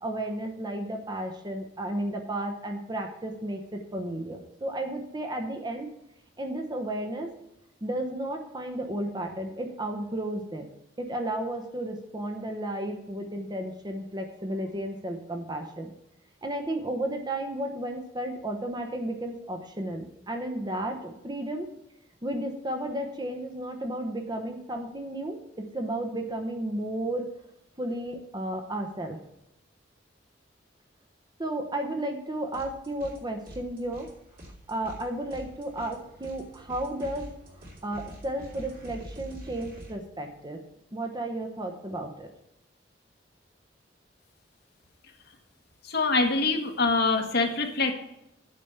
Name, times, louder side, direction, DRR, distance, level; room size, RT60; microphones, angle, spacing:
voice 1, 0.0-5.9 6.4-7.3 7.8-10.7 11.0-15.9 16.4-21.7 22.2-27.3 27.8-29.2 31.4-34.1 34.7-37.3 37.8-40.6 40.9-42.3, right 1 dB, 25° right, 4 dB, 0.9 m, -33 dB
sound 1, 32.5-33.2 33.4-39.9, equal, 50° right, 2.4 m, -45 dB
voice 2, 45.8-47.9, left 3 dB, 60° left, 3 dB, 1.4 m, -24 dB
8.8 x 5.1 x 6.9 m, 0.84 s
head